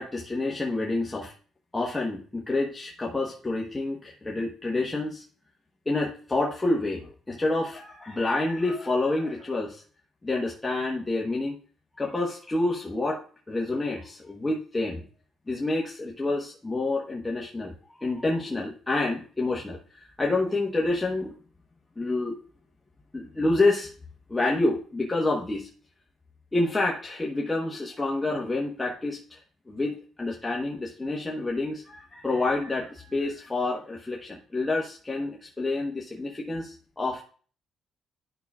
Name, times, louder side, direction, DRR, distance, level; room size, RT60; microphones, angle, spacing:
voice 1, 0.0-1.3 1.7-5.2 5.9-9.8 10.2-11.6 12.0-13.2 13.5-15.0 15.5-21.3 22.0-22.4 23.1-23.9 24.3-25.7 26.5-29.4 29.7-37.2, left 2 dB, 15° left, -2 dB, 1.1 m, -28 dB
11.0 x 5.6 x 2.3 m, 0.42 s
cardioid pair, 90°, 0 cm